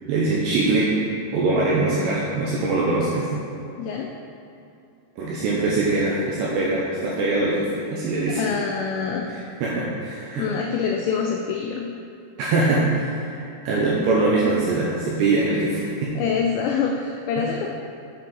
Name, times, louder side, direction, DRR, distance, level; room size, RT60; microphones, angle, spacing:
voice 1, 0.0-0.9 1.3-3.3 5.2-8.4 9.3-10.5 12.4-16.1 17.4-17.5, right 2 dB, 80° right, -5 dB, 2.6 m, -23 dB
voice 2, 3.8-4.1 8.3-9.3 10.3-11.9 16.2-17.7, left 6 dB, 90° left, 1 dB, 2.5 m, -25 dB
8.6 x 4.5 x 4.0 m, 2.6 s
omnidirectional pair, 5.6 m